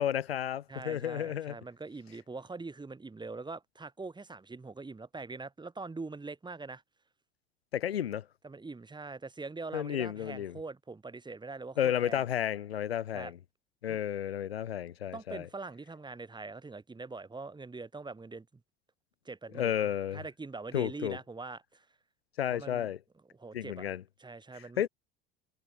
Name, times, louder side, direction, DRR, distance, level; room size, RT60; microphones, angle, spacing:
voice 1, 0.0-1.6 7.7-8.3 9.7-10.6 11.8-13.4 13.8-15.5 19.5-20.2 20.7-21.2 22.4-23.0 23.5-24.0 24.8-24.9, left 10 dB, 80° left, 1.2 m, -32 dB
voice 2, 0.7-6.8 8.4-12.2 13.1-13.3 13.9-14.0 15.1-18.6 19.2-21.9 22.5-22.9 23.3-23.9 24.2-24.9, right 3 dB, 15° right, 4.5 m, -43 dB
figure-of-eight pair, 70°, 30 cm